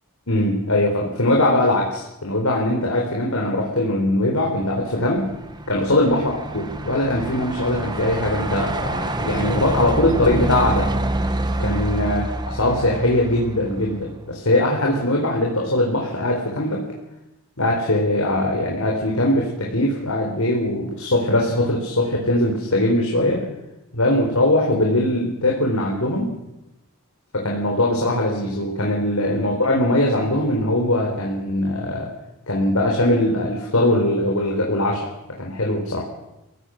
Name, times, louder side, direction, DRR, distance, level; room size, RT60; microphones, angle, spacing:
voice 1, 0.3-5.3 5.7-10.9 11.6-16.8 17.6-23.4 23.9-26.3 27.3-32.1 32.5-35.1 35.4-36.0, left 1 dB, 75° left, -1 dB, 4.0 m, -21 dB
Truck, 4.8-14.2, right 1 dB, 20° right, 1.3 m, -27 dB
28.5 x 17.0 x 6.4 m, 0.95 s
head